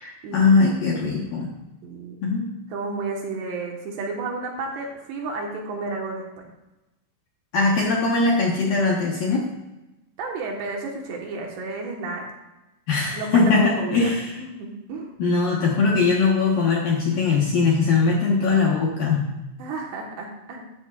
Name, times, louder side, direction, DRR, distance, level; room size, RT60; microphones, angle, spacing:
voice 1, 0.0-1.5 2.2-2.5 7.5-9.4 12.9-14.4 15.2-19.3, left 4 dB, 70° left, -2 dB, 2.2 m, -21 dB
voice 2, 1.8-2.2 2.7-6.5 10.2-12.2 13.1-14.1 14.4-15.1 19.6-20.6, right 3 dB, 65° right, 0 dB, 3.2 m, -31 dB
14.5 x 12.5 x 2.5 m, 1.0 s
omnidirectional pair, 5.7 m